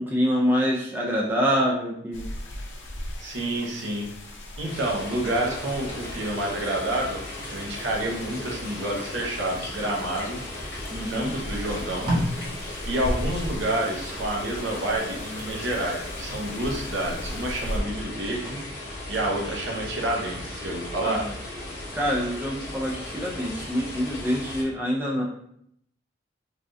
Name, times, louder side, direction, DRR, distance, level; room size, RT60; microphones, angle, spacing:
voice 1, 0.0-2.3 10.9-11.4 21.0-21.4 21.9-25.2, equal, 10° right, -3 dB, 0.3 m, -26 dB
sound 1, 2.1-17.8, left 1 dB, 80° left, 0.6 m, -38 dB
voice 2, 3.2-4.1 4.6-7.2 7.5-10.4 11.1-12.1 12.9-18.6 19.1-21.2, right 1 dB, 75° right, -1 dB, 0.7 m, -29 dB
sound 2, 4.7-24.6, left 1 dB, 50° left, 1.0 m, -37 dB
Packing tape duct tape, 8.7-10.3 11.0-11.1 11.5-14.4 14.9-15.1, equal, 25° right, 1.0 m, -34 dB
3.3 x 2.3 x 2.5 m, 0.71 s
head